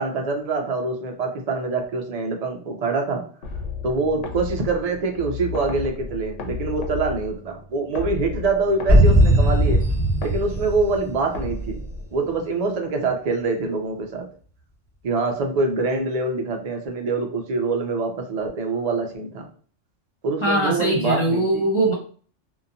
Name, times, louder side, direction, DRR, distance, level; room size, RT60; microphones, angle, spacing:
voice 1, 0.0-3.2 3.8-9.8 10.2-11.8 12.1-14.3 15.0-19.5 20.2-21.6, right 3 dB, 70° right, 3 dB, 0.3 m, -25 dB
sound 1, 3.4-12.5, left 3 dB, 80° left, 0.9 m, -34 dB
sound 2, 8.9-11.6, equal, ahead, 1.2 m, -18 dB
voice 2, 20.4-21.9, right 1 dB, 25° left, -3 dB, 0.9 m, -21 dB
2.7 x 2.2 x 2.5 m, 0.43 s
omnidirectional pair, 1.3 m